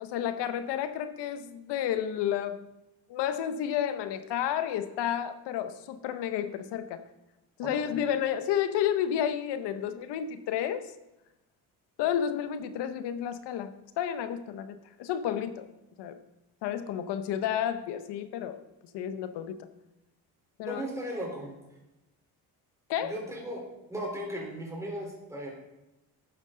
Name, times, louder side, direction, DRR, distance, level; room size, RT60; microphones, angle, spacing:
voice 1, 0.0-2.6 3.1-7.0 7.6-10.9 12.0-15.7 16.0-16.2 16.6-18.6 18.9-19.7 20.6-20.8 22.9-23.1, left 9 dB, 85° left, 11 dB, 0.9 m, -31 dB
voice 2, 7.6-8.0 20.7-21.5 23.0-23.6 23.9-25.5, equal, 5° right, -2 dB, 3.6 m, -36 dB
12.5 x 7.5 x 3.8 m, 0.96 s
cardioid pair, 75°, 40 cm